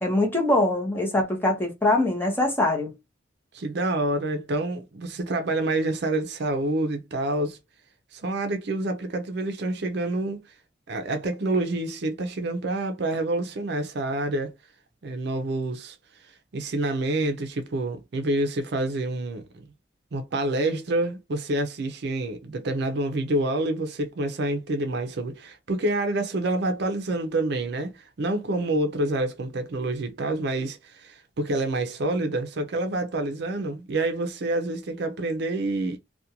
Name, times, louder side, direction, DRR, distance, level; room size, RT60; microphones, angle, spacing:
voice 1, 0.0-2.9, left 1 dB, 10° left, 0.7 m, -23 dB
voice 2, 3.5-7.6 8.1-10.4 10.9-14.5 15.0-16.0 16.5-19.6 20.1-36.0, right 2 dB, 60° right, 0.5 m, -27 dB
2.5 x 2.2 x 2.8 m
head